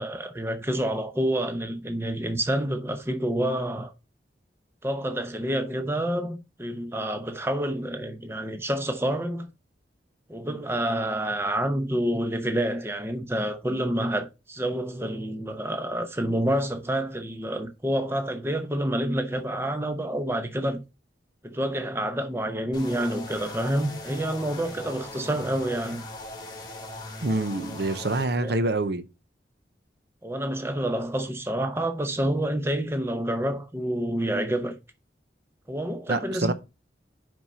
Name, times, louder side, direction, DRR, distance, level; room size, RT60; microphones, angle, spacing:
voice 1, 0.0-3.9 4.8-9.5 10.3-20.8 21.4-26.0 28.4-28.6 30.2-34.7 35.7-36.5, right 1 dB, 15° right, 0.7 m, -28 dB
sound 1, 22.7-28.2, left 2 dB, 20° left, 1.4 m, -40 dB
voice 2, 27.2-29.0 36.1-36.5, right 2 dB, 65° right, 0.7 m, -26 dB
5.8 x 5.4 x 5.5 m
head